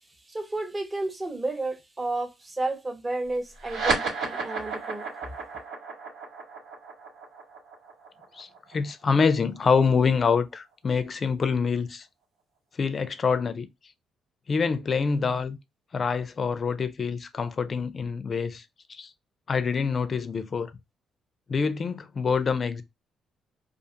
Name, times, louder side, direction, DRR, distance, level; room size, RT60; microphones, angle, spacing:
voice 1, 0.3-5.1, right 2 dB, 20° right, 0.7 m, -32 dB
sound 1, 3.6-10.4, right 4 dB, 85° right, 1.5 m, -33 dB
voice 2, 8.3-12.1 12.8-13.7 14.5-15.6 15.9-18.6 18.9-19.1 19.5-20.7 21.5-22.8, left 5 dB, 40° left, 0.4 m, -26 dB
2.4 x 2.4 x 2.7 m
cardioid pair, 90°, 0 cm